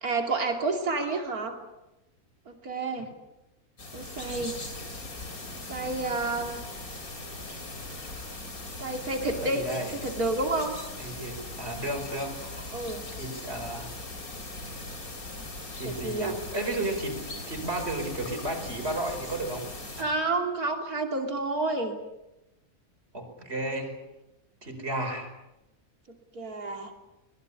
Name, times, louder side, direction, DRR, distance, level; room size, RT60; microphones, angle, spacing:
voice 1, 0.0-1.6 2.5-3.1 3.9-4.6 5.7-6.6 8.8-9.6 9.9-10.8 12.7-13.0 15.8-16.4 20.0-22.0 26.1-26.9, right 2 dB, 90° right, 3 dB, 3.3 m, -30 dB
sound 1, 3.8-20.0, left 2 dB, 75° left, 4.2 m, -39 dB
voice 2, 9.4-9.9 11.0-12.4 13.2-13.9 15.7-19.6 20.0-20.1 23.1-24.0 24.6-25.3, right 1 dB, 45° right, 4 dB, 5.3 m, -33 dB
24.0 x 21.0 x 8.5 m, 0.95 s
omnidirectional pair, 1.5 m